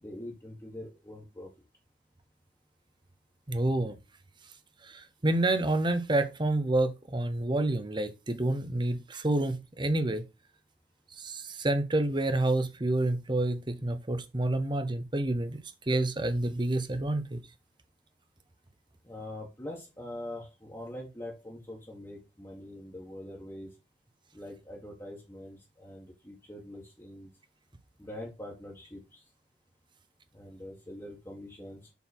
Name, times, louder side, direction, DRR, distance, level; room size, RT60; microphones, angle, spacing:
voice 1, 0.0-1.5 19.0-23.7 24.3-27.3 28.0-29.2 30.3-31.8, left 1 dB, 15° left, 1.6 m, -43 dB
voice 2, 3.5-3.9 4.8-10.2 11.2-17.4, right 2 dB, 25° right, 0.8 m, -28 dB
7.0 x 4.1 x 4.4 m
head